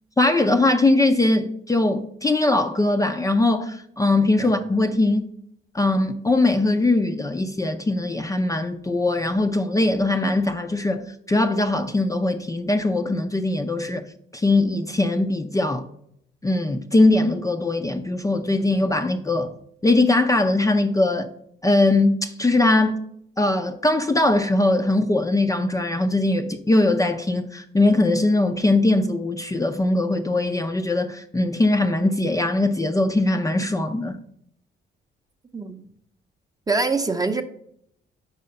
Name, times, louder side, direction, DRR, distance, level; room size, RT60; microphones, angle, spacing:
voice 1, 0.2-5.3 5.7-14.1 14.3-15.8 16.4-19.5 19.8-21.3 21.6-23.0 23.4-34.2, left 2 dB, 15° left, 0.5 m, -21 dB
voice 2, 36.7-37.4, right 3 dB, 20° right, 0.7 m, -24 dB
5.6 x 4.8 x 5.3 m
cardioid pair, 90°, 20 cm